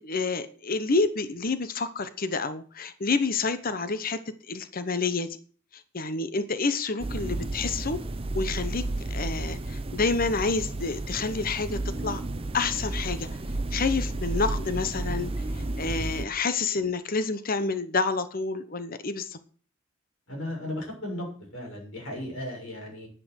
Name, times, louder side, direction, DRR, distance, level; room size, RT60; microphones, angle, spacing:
voice 1, 0.0-4.2 4.5-5.4 5.7-8.0 8.3-12.2 12.5-13.3 13.7-15.4 15.8-19.4, left 4 dB, 45° left, 12 dB, 0.9 m, -28 dB
sound 1, 7.0-16.3, right 2 dB, 25° right, 0.7 m, -32 dB
voice 2, 20.3-21.3 21.5-23.1, left 1 dB, 65° left, 0 dB, 6.9 m, -35 dB
10.5 x 10.0 x 6.4 m, 0.43 s
head